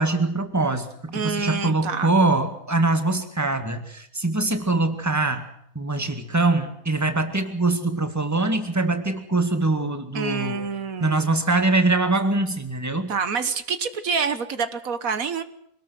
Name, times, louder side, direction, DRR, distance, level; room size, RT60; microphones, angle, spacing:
voice 1, 0.0-5.4 5.8-10.7 11.0-13.1, right 2 dB, 10° right, 7 dB, 2.1 m, -23 dB
voice 2, 1.1-2.1 10.1-11.2 13.1-15.4, right 5 dB, 75° right, 11 dB, 1.7 m, -27 dB
25.0 x 19.0 x 6.5 m, 0.71 s
omnidirectional pair, 1.5 m